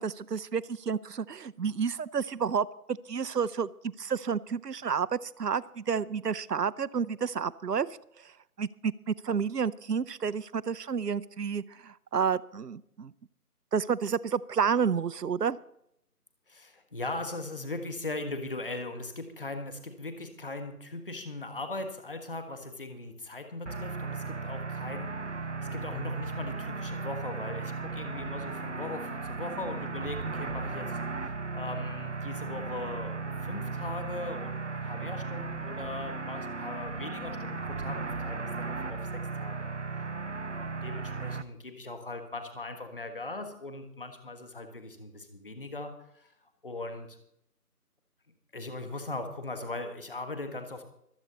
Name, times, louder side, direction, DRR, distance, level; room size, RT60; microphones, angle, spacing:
voice 1, 0.0-7.9 8.6-13.1 13.7-15.6, right 6 dB, 80° right, 19 dB, 0.8 m, -30 dB
voice 2, 16.5-39.0 39.4-39.7 39.9-40.1 40.4-46.3 46.6-47.2 48.5-50.8, left 2 dB, 35° left, 7 dB, 1.6 m, -39 dB
sound 1, 23.7-41.4, right 4 dB, 50° right, 0.6 m, -36 dB
24.5 x 8.2 x 4.1 m, 0.75 s
figure-of-eight pair, 170°, 47 cm